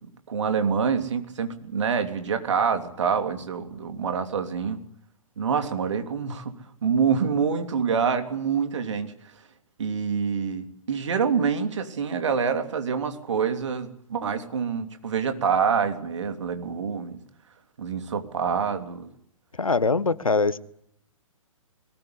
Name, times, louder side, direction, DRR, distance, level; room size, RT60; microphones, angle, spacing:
voice 1, 0.0-4.8 5.4-6.6 6.8-9.1 9.8-17.2 17.8-19.1, right 6 dB, 55° right, 8 dB, 3.1 m, -26 dB
voice 2, 19.6-20.6, left 4 dB, 75° left, 17 dB, 1.4 m, -22 dB
21.5 x 19.5 x 9.8 m, 0.72 s
figure-of-eight pair, 120°, 18 cm